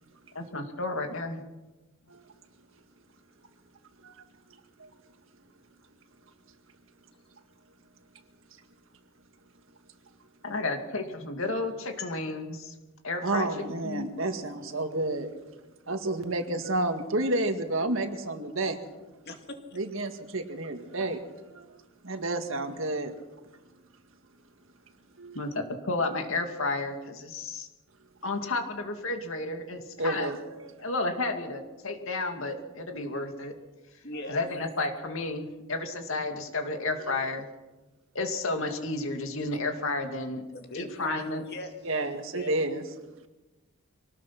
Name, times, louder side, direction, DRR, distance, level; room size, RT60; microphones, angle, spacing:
voice 1, 0.3-1.4 10.4-12.7 13.0-13.5 13.8-14.1 25.3-27.7 28.2-30.3 30.8-33.5 34.3-37.4 38.1-40.4 40.7-41.4, left 2 dB, 65° left, 5 dB, 2.4 m, -32 dB
voice 2, 13.2-15.3 15.9-18.8 19.7-23.1 25.2-25.4 30.0-30.8 37.1-37.2 41.8-42.8, right 2 dB, 65° right, 6 dB, 2.0 m, -31 dB
voice 3, 19.3-19.8 34.0-34.5 40.5-41.8 42.3-42.6, left 1 dB, 50° left, 5 dB, 2.4 m, -40 dB
24.0 x 19.0 x 6.0 m, 1.1 s
head